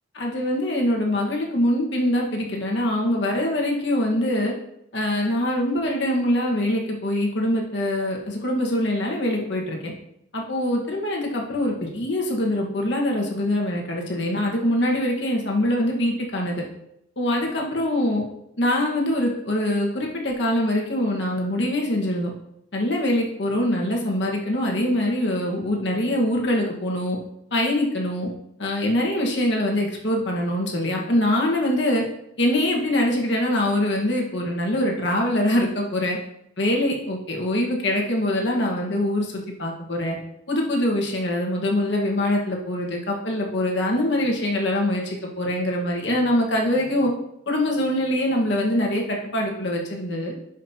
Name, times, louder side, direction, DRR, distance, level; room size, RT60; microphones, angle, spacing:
voice 1, 0.1-4.5 4.9-9.9 10.3-16.6 17.2-18.2 18.6-22.3 22.7-27.2 27.5-28.3 28.6-32.0 32.4-36.2 36.6-40.2 40.5-47.1 47.5-50.3, left 1 dB, 65° left, -1 dB, 1.6 m, -23 dB
11.0 x 5.3 x 2.9 m, 0.78 s
head